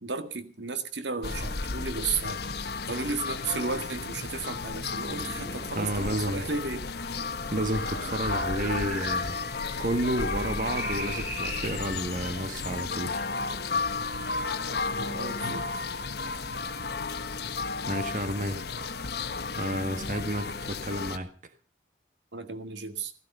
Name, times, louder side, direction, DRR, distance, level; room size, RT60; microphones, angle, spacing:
voice 1, 0.0-6.8 15.0-15.7 22.3-23.1, right 4 dB, 80° right, 1.8 m, -34 dB
sound 1, 1.2-21.2, left 4 dB, 60° left, 1.2 m, -33 dB
sound 2, 5.0-12.4, right 1 dB, 15° right, 5.0 m, -40 dB
voice 2, 5.7-6.4 7.5-9.4 9.8-13.3 15.4-15.6 17.9-18.6 19.6-21.3, right 1 dB, 45° right, 1.6 m, -31 dB
15.5 x 15.5 x 5.5 m
head